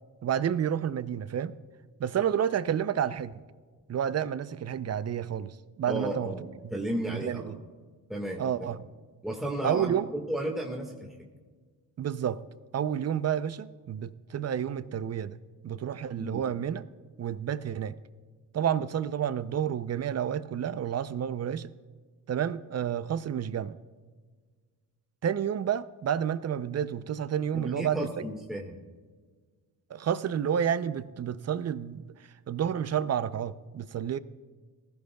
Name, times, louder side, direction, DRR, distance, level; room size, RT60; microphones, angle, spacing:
voice 1, 0.2-1.5 2.0-3.4 3.9-6.3 6.6-6.7 7.1-7.6 8.4-8.9 9.6-10.1 12.0-12.4 12.7-15.4 15.6-16.8 17.2-18.0 18.5-21.7 22.3-23.8 25.2-28.3 29.9-32.0 32.5-34.2, right 9 dB, 40° right, 0.6 m, -30 dB
voice 2, 5.9-7.6 8.1-8.4 9.2-9.9 10.3-11.1 16.2-16.4 27.5-28.8, right 1 dB, ahead, 1.7 m, -33 dB
19.0 x 15.5 x 2.3 m
cardioid pair, 95°, 38 cm